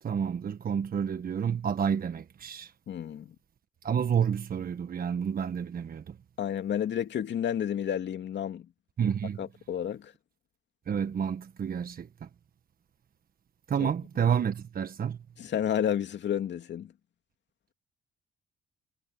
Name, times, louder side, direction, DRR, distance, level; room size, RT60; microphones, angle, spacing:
voice 1, 0.0-2.7 3.8-6.2 9.0-9.4 10.9-12.3 13.7-15.2, right 7 dB, 45° right, 1.4 m, -29 dB
voice 2, 2.9-3.3 6.4-8.7 9.4-10.1 13.8-13.9 15.4-16.9, left 9 dB, 65° left, 2.4 m, -31 dB
cardioid pair, 90°, 20 cm